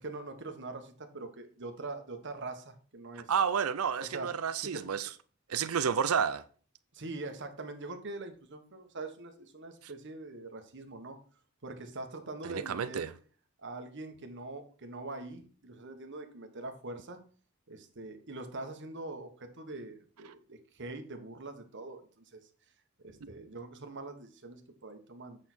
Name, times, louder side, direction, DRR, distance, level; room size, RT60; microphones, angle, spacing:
voice 1, 0.0-3.3 4.0-4.3 4.6-4.8 6.9-11.2 11.6-13.1 13.6-17.2 17.7-22.5 23.0-25.4, right 2 dB, 60° right, 1.4 m, -43 dB
voice 2, 3.3-5.1 5.5-6.4 12.4-13.1, right 7 dB, 85° right, 0.5 m, -30 dB
8.2 x 5.7 x 4.4 m
head